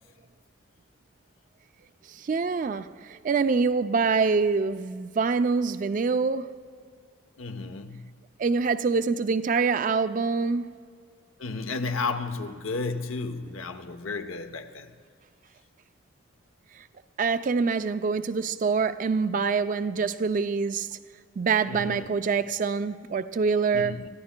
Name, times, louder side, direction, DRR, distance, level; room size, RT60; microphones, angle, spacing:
voice 1, 2.2-6.5 8.4-10.7 17.2-20.9 21.4-24.1, right 4 dB, 40° right, 0.3 m, -25 dB
voice 2, 7.4-8.2 11.4-14.9 21.7-22.1 23.7-24.1, left 3 dB, 80° left, 0.8 m, -33 dB
25.0 x 14.0 x 2.2 m
head